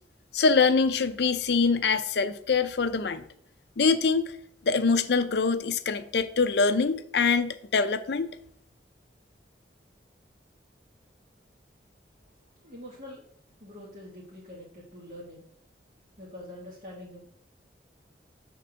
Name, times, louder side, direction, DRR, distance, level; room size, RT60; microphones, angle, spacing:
voice 1, 0.3-3.2 3.8-4.4 4.6-8.4, left 4 dB, 65° left, 0.5 m, -24 dB
voice 2, 12.6-13.2 13.6-15.4 16.2-17.2, left 1 dB, 45° right, 1.6 m, -45 dB
6.8 x 3.7 x 6.3 m
head